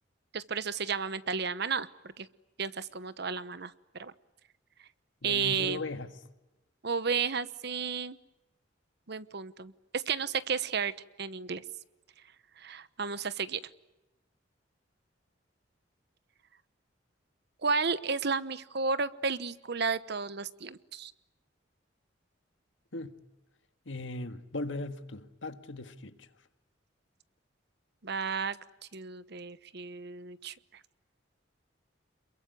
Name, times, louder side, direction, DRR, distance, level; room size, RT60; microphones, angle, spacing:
voice 1, 0.3-1.9 2.2-2.3 2.6-4.1 5.2-5.8 6.8-8.2 9.1-10.9 11.2-11.6 12.6-13.6 17.6-21.1 28.0-28.6 28.9-30.5, right 5 dB, 60° right, 1.1 m, -32 dB
voice 2, 5.2-6.2 22.9-23.2 23.9-26.3, left 2 dB, 75° left, 1.8 m, -38 dB
27.5 x 22.5 x 9.4 m
head